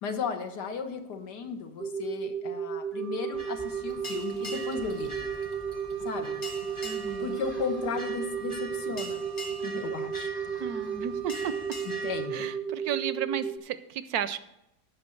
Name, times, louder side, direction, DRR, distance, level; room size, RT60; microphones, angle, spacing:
voice 1, 0.0-5.3 6.0-6.4 7.2-9.2 9.6-10.3 11.8-12.5, left 6 dB, 85° left, 6 dB, 1.7 m, -35 dB
sound 1, 1.8-13.6, right 7 dB, 55° right, 0.6 m, -34 dB
Wind instrument woodwind instrument, 2.9-12.6, right 14 dB, 65° left, 2.7 m, -49 dB
sound 2, 3.3-12.3, equal, 25° left, 0.7 m, -42 dB
voice 2, 6.8-7.4 10.6-11.5 12.3-14.4, right 9 dB, 75° right, 13 dB, 1.0 m, -33 dB
9.5 x 6.0 x 7.7 m, 0.83 s
omnidirectional pair, 1.7 m